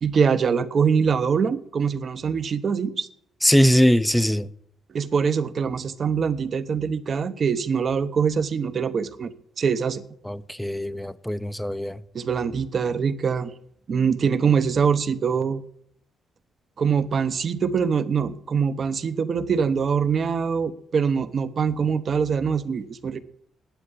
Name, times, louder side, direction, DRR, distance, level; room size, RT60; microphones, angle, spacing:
voice 1, 0.0-3.1 4.9-9.3 9.6-10.0 12.1-13.5 13.9-15.6 16.8-23.2, right 6 dB, 50° right, 0.9 m, -23 dB
voice 2, 3.4-4.5 10.3-12.0, equal, 5° left, 0.6 m, -21 dB
10.0 x 8.6 x 8.2 m
cardioid pair, 90°, 0 cm